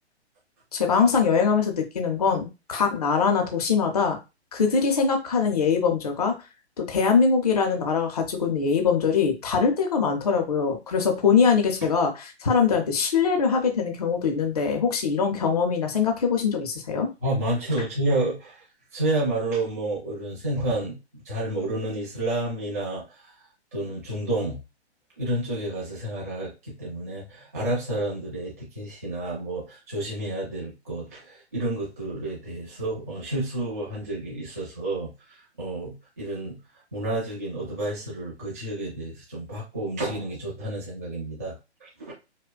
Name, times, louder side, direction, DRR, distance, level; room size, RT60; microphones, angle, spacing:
voice 1, 0.7-4.2 4.5-6.3 6.8-17.1, left 5 dB, 35° left, 3 dB, 0.5 m, -22 dB
voice 2, 17.2-18.6 18.9-21.0 21.2-23.3 23.7-24.6 25.2-36.6 36.9-42.1, right 1 dB, 15° right, -5 dB, 0.6 m, -30 dB
5.0 x 2.1 x 2.2 m, 0.26 s
hypercardioid pair, 175°, 34 cm